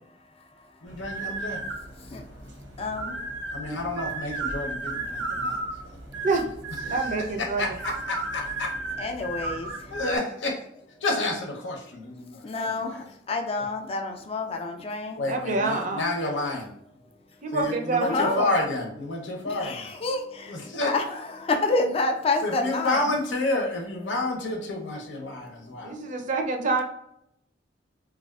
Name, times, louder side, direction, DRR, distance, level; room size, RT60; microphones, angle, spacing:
voice 1, 0.8-1.6 3.5-6.0 6.9-7.0 7.4-8.8 9.9-10.6 11.0-13.1 13.6-13.7 15.2-16.7 17.5-19.9 20.5-20.9 22.4-25.9, left 2 dB, 85° left, 2 dB, 0.7 m, -30 dB
sound 1, 0.9-10.2, right 2 dB, 90° right, 0.9 m, -34 dB
voice 2, 2.8-3.1 9.0-9.7 12.4-15.2 18.0-18.4 19.6-20.6 20.9-23.0, left 3 dB, 30° left, 4 dB, 0.4 m, -28 dB
voice 3, 6.8-7.6 15.3-16.1 17.4-18.6 25.8-26.8, right 3 dB, 45° right, 4 dB, 0.5 m, -26 dB
3.4 x 2.3 x 2.3 m, 0.77 s
head